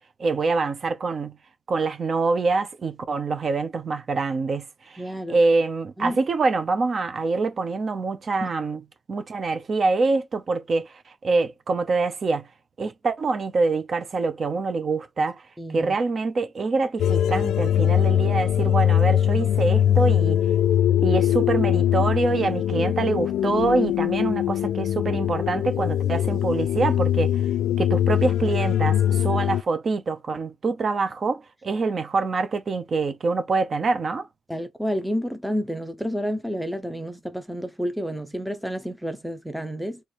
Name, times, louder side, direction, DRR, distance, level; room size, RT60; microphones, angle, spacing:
voice 1, 0.2-1.3 1.7-8.8 9.1-10.9 11.2-12.5 12.8-15.4 15.7-20.4 21.0-27.3 27.8-34.3, right 3 dB, 40° right, 0.8 m, -25 dB
voice 2, 5.0-5.4 6.0-6.2 8.4-8.5 15.6-15.9 34.5-40.0, equal, ahead, 0.8 m, -30 dB
sound 1, 17.0-29.6, left 10 dB, 90° left, 0.3 m, -22 dB
3.3 x 3.0 x 4.4 m
cardioid pair, 135°, 0 cm